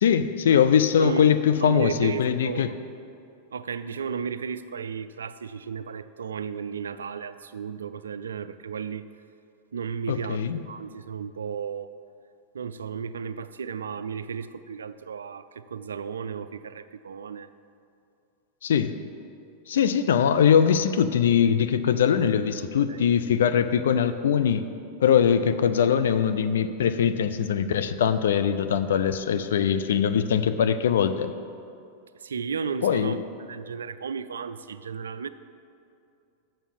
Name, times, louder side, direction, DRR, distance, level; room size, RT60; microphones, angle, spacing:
voice 1, 0.0-2.7 10.1-10.6 18.6-18.9 19.7-24.7 25.0-31.3 32.8-33.2, left 8 dB, 75° left, 10 dB, 0.4 m, -22 dB
voice 2, 1.0-1.3 1.6-2.7 3.5-9.1 9.7-11.9 12.5-17.5 22.9-23.1 32.1-33.2 33.5-35.3, right 6 dB, 80° right, 13 dB, 0.3 m, -34 dB
7.0 x 5.5 x 7.3 m, 2.5 s
hypercardioid pair, 95°, 0 cm